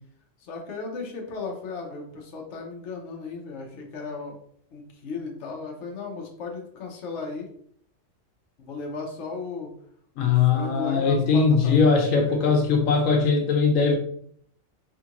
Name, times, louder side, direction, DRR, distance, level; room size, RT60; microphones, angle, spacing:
voice 1, 0.4-4.4 4.7-7.5 8.6-9.7 10.2-11.9 12.3-12.6, left 4 dB, 65° left, 0 dB, 1.0 m, -36 dB
voice 2, 10.2-14.0, left 5 dB, 90° left, 3 dB, 1.1 m, -20 dB
3.5 x 2.4 x 2.9 m, 0.62 s
omnidirectional pair, 1.4 m